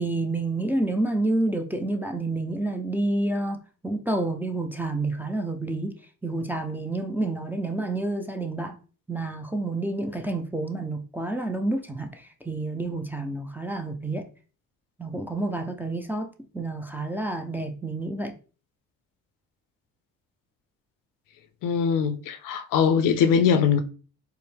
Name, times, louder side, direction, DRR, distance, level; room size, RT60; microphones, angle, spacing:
voice 1, 0.0-3.6 3.8-5.9 6.2-8.8 9.1-14.3 15.0-18.3, right 2 dB, 5° right, 0.4 m, -29 dB
voice 2, 21.6-23.8, left 7 dB, 70° left, 0.5 m, -21 dB
4.4 x 2.1 x 3.4 m
cardioid pair, 110°, 33 cm